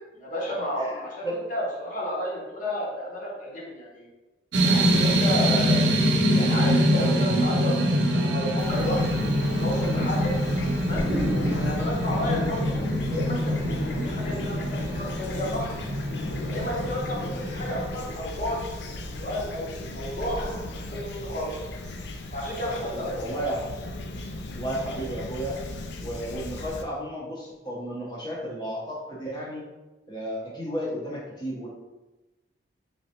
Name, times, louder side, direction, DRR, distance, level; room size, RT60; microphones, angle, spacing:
voice 1, 0.1-4.1 4.6-5.9 6.3-9.2 9.6-10.3 10.8-11.1 11.6-13.6 13.8-15.7 16.5-18.6 19.1-21.5 22.3-23.4, left 1 dB, 45° left, -4 dB, 1.1 m, -32 dB
voice 2, 0.7-1.4 22.8-23.7 24.5-25.6 26.0-29.6 30.1-31.7, right 1 dB, 25° left, -4 dB, 0.8 m, -33 dB
sound 1, 4.5-17.9, equal, 70° right, 0.5 m, -25 dB
Fowl / Chirp tweet, 8.6-26.8, left 2 dB, 65° left, 0.4 m, -36 dB
sound 2, 9.6-21.0, equal, 85° left, 1.3 m, -40 dB
3.9 x 3.3 x 2.8 m, 1.1 s
head